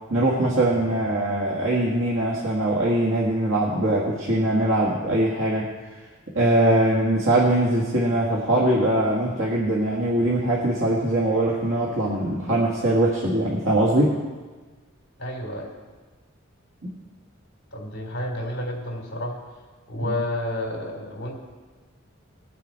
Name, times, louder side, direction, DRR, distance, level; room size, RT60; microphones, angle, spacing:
voice 1, 0.1-5.7 6.3-14.1 16.8-16.9, right 1 dB, 75° right, -4 dB, 1.7 m, -22 dB
voice 2, 15.2-15.7 17.7-19.6 19.9-21.4, left 1 dB, 55° left, 0 dB, 3.4 m, -30 dB
20.0 x 7.3 x 4.5 m, 1.3 s
head